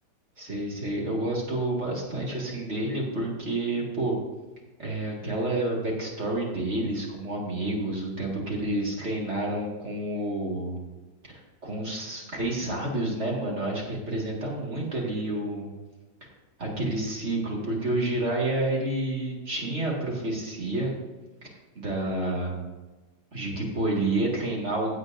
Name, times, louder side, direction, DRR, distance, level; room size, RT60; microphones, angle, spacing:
voice 1, 0.4-4.2 4.8-10.8 11.3-15.7 16.6-20.9 21.4-21.5 21.7-22.6 23.3-25.0, right 2 dB, 35° right, -3 dB, 2.2 m, -29 dB
16.5 x 7.9 x 2.6 m, 1.2 s
omnidirectional pair, 2.2 m